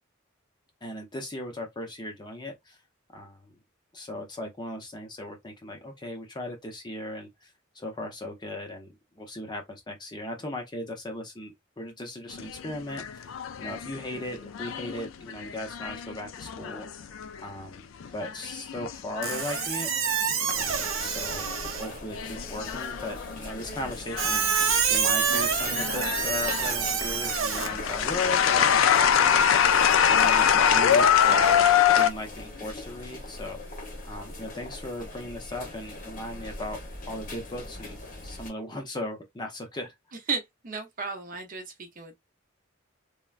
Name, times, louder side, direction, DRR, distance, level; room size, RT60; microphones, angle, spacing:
voice 1, 0.8-2.8 3.1-3.5 3.9-7.5 7.7-13.3 13.6-16.9 17.4-17.8 18.1-19.9 20.5-21.5 21.8-24.5 24.9-33.6 34.0-36.8 37.1-39.9, left 1 dB, 20° left, 0.6 m, -37 dB
sound 1, 12.3-17.6 18.0-20.8 21.1-21.6 22.2-24.8 25.2-32.1, left 8 dB, 75° left, 0.4 m, -24 dB
Squeak, 19.2-22.0 24.2-27.7, right 6 dB, 85° right, 0.6 m, -27 dB
sound 2, 20.5-38.5, left 2 dB, 45° left, 0.9 m, -40 dB
voice 2, 40.3-42.1, right 4 dB, 40° right, 0.6 m, -34 dB
3.3 x 2.1 x 2.4 m
head